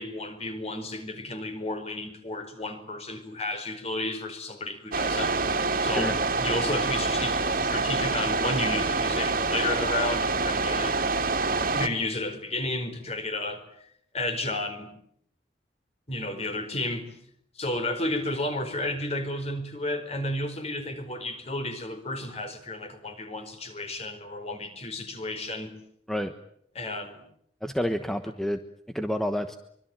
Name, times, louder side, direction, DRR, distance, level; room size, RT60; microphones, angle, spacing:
voice 1, 0.0-5.3 5.8-11.0 11.7-13.6 14.1-14.9 16.1-17.1 17.5-25.7 26.7-27.2, left 2 dB, 35° left, 8 dB, 4.7 m, -32 dB
sound 1, 4.9-11.9, right 3 dB, 50° right, 2.6 m, -26 dB
voice 2, 27.6-28.6 28.9-29.5, equal, ahead, 7 dB, 1.2 m, -28 dB
25.0 x 24.0 x 9.1 m, 0.69 s
head